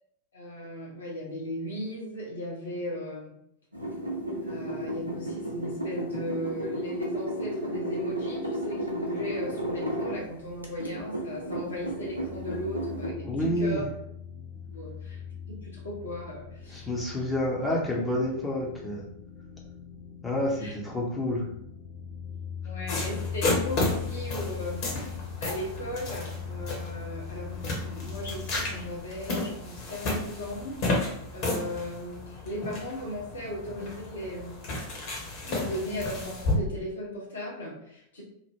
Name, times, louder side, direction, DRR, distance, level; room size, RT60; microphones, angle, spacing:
voice 1, 0.3-3.3 4.4-13.8 14.7-15.2 15.5-16.9 20.6-20.8 22.6-24.9 25.4-34.6 35.4-38.2, left 1 dB, 70° left, -3 dB, 1.0 m, -37 dB
sound 1, 3.7-10.2 10.6-13.1, right 1 dB, 85° right, 0.6 m, -33 dB
sound 2, 10.0-28.9, left 7 dB, 20° right, 0.9 m, -40 dB
voice 2, 13.2-13.8 16.7-19.1 20.2-21.5, left 1 dB, 10° left, -4 dB, 0.7 m, -29 dB
sound 3, 22.9-36.6, left 2 dB, 45° left, 1.0 m, -33 dB
2.8 x 2.1 x 3.5 m, 0.73 s
figure-of-eight pair, 90°, 0 cm